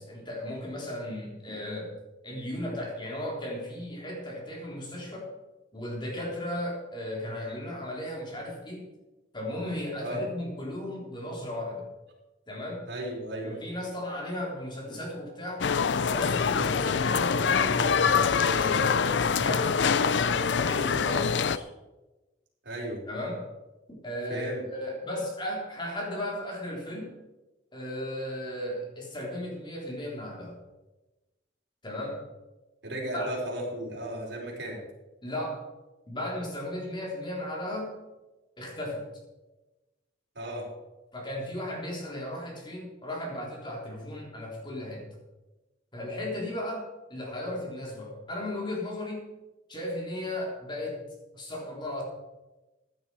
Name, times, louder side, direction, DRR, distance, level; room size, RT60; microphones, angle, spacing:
voice 1, 0.0-1.9 2.2-5.3 5.7-8.9 9.3-11.9 12.5-12.8 13.4-15.6 16.1-19.8 20.2-21.7 23.1-23.5 23.9-27.2 27.7-30.6 31.8-32.2 33.1-33.3 35.2-35.6 36.1-38.0 38.6-39.0 41.1-45.1 45.9-49.3 49.7-51.0 51.3-52.0, left 1 dB, 25° left, -2 dB, 4.0 m, -35 dB
voice 2, 12.9-13.6 20.8-21.0 22.6-23.0 24.3-24.6 32.8-34.8 40.3-40.7, right 1 dB, 65° right, -2 dB, 4.9 m, -35 dB
sound 1, 15.6-21.6, left 6 dB, 75° left, 0.5 m, -25 dB
15.5 x 10.5 x 4.8 m, 1.1 s
head